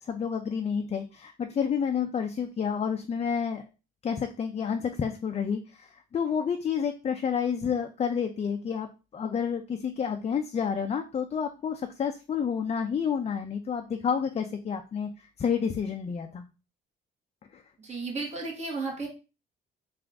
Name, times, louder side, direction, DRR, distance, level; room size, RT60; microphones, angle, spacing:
voice 1, 0.0-3.6 4.0-15.1 15.4-16.4 17.5-17.6, left 7 dB, 35° left, 6 dB, 0.4 m, -29 dB
voice 2, 17.8-19.1, right 3 dB, 35° right, 0 dB, 1.5 m, -33 dB
3.6 x 2.5 x 3.4 m, 0.32 s
cardioid pair, 90°, 20 cm